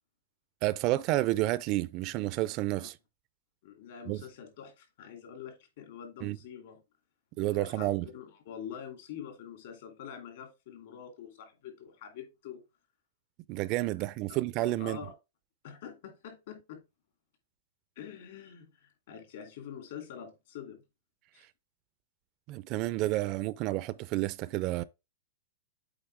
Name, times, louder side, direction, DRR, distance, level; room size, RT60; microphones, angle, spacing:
voice 1, 0.6-3.0 4.1-4.2 6.2-6.4 7.4-8.1 13.5-15.0 22.5-24.8, right 17 dB, 35° right, 0.3 m, -30 dB
voice 2, 3.6-6.8 7.5-12.6 14.3-14.4 14.8-15.1 15.6-16.8 18.0-20.8 21.3-21.5, left 8 dB, 65° left, 2.5 m, -45 dB
7.9 x 4.0 x 3.4 m
hypercardioid pair, 150°, 0 cm